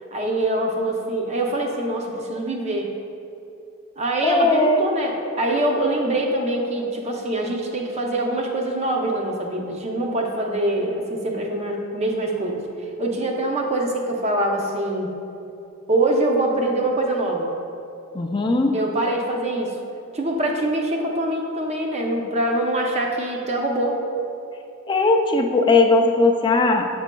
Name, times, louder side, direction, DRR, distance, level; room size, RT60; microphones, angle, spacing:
voice 1, 0.1-2.9 4.0-15.1 15.9-17.5 18.7-19.7 20.1-24.0, right 1 dB, 30° right, 1 dB, 0.6 m, -24 dB
voice 2, 4.2-4.8 18.1-18.7 24.9-26.9, left 3 dB, 20° left, 3 dB, 0.4 m, -18 dB
7.2 x 6.1 x 2.2 m, 2.8 s
head